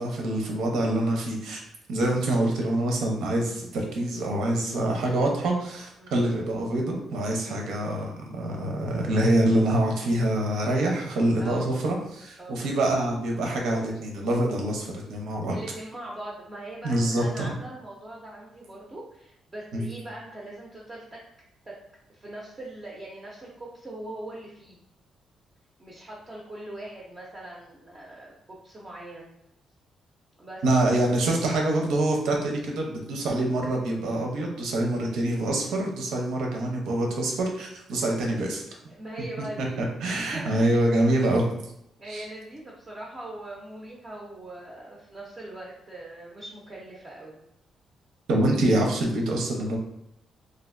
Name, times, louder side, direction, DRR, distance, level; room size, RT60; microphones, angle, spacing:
voice 1, 0.0-1.6 1.9-15.6 16.8-17.4 19.7-19.9 30.6-38.6 39.6-41.5 42.1-42.3 48.3-49.8, right 1 dB, 90° right, 1 dB, 0.7 m, -25 dB
voice 2, 15.5-21.2 21.7-21.8 22.1-24.8 25.8-29.3 30.4-30.8 38.9-39.8 40.3-40.7 41.1-41.3 42.0-47.4, right 1 dB, 20° right, -4 dB, 0.4 m, -41 dB
3.2 x 2.5 x 2.5 m, 0.79 s
cardioid pair, 180°, 0 cm